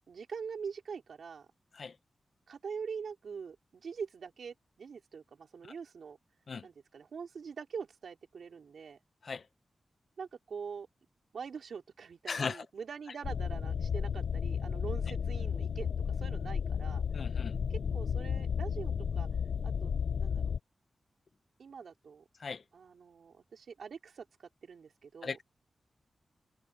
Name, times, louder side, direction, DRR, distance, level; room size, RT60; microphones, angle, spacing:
voice 1, 0.1-1.5 2.5-6.2 6.6-9.0 10.2-10.9 11.3-17.0 17.7-19.3 19.6-20.6 21.6-22.2 22.7-25.4, right 6 dB, 80° right, 4.0 m, -44 dB
sound 1, 13.2-20.6, left 7 dB, 85° left, 0.5 m, -33 dB
voice 2, 17.1-17.5 22.4-22.6 25.2-25.4, left 5 dB, 55° left, 0.8 m, -36 dB
wide cardioid pair, 160°, 0 cm